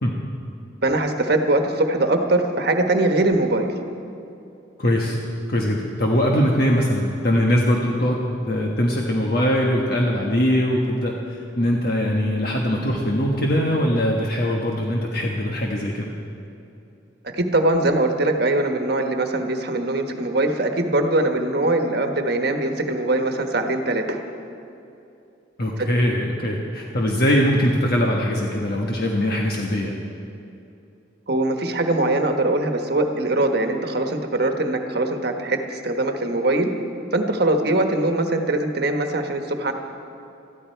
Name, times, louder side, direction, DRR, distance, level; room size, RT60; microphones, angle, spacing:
voice 1, 0.8-3.7 17.2-24.2 25.8-25.9 31.3-36.7 37.1-39.7, right 2 dB, 55° right, 5 dB, 1.3 m, -22 dB
voice 2, 4.8-5.2 5.5-11.1 11.6-16.1 25.6-30.0, equal, 50° left, -1 dB, 1.3 m, -21 dB
20.5 x 14.0 x 4.6 m, 2.7 s
head